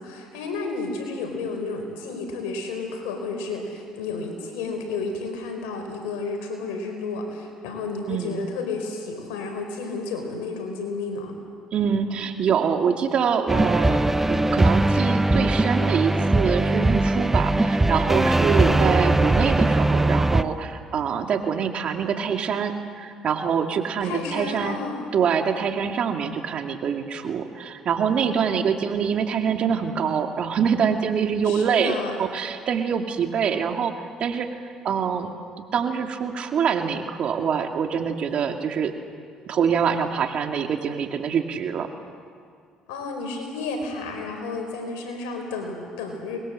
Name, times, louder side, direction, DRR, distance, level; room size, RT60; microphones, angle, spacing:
voice 1, 0.0-11.3 18.5-18.8 24.0-25.1 31.4-32.2 42.9-46.4, left 3 dB, 85° left, 3 dB, 4.6 m, -32 dB
voice 2, 8.1-8.4 11.7-14.0 14.3-24.8 25.1-31.9 32.2-33.9 34.2-34.5 34.8-35.3 35.7-38.9 39.4-41.9, right 7 dB, 55° right, 5 dB, 2.3 m, -25 dB
sound 1, 13.5-20.4, right 2 dB, 15° right, 1.0 m, -20 dB
25.0 x 21.0 x 7.7 m, 2.2 s
supercardioid pair, 70°, 2 cm